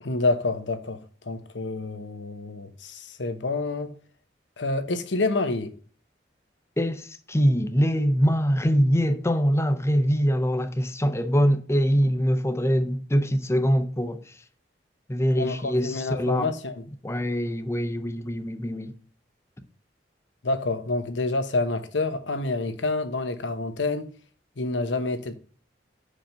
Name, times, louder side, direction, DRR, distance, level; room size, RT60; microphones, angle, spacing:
voice 1, 0.0-3.9 4.6-5.7 15.4-16.9 20.4-24.1 24.6-25.3, left 2 dB, 85° left, 1.0 m, -28 dB
voice 2, 6.8-14.2 15.1-16.5 17.0-18.9, equal, 15° left, 0.7 m, -23 dB
5.9 x 5.1 x 6.5 m
head